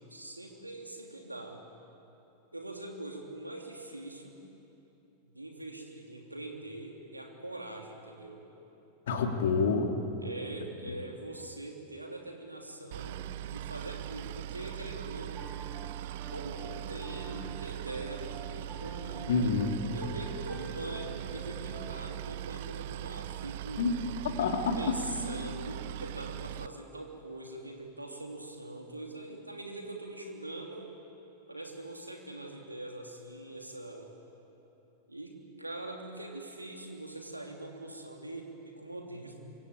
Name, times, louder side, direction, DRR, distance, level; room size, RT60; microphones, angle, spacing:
voice 1, 0.0-1.6 2.5-4.4 5.2-8.4 10.2-15.5 16.3-19.5 19.9-23.9 24.7-30.9 31.5-34.1 35.1-39.4, right 2 dB, 85° right, 2 dB, 3.2 m, -43 dB
voice 2, 9.1-9.9 19.3-19.8 23.8-23.9 24.2-25.0, left 4 dB, 60° left, 4 dB, 2.6 m, -28 dB
Boat Water vehicle, 12.9-26.7, right 13 dB, 50° right, 0.6 m, -40 dB
Piano, 15.4-22.2, right 4 dB, 15° right, 4.0 m, -48 dB
26.0 x 24.0 x 8.9 m, 3.0 s
figure-of-eight pair, 90°, 0 cm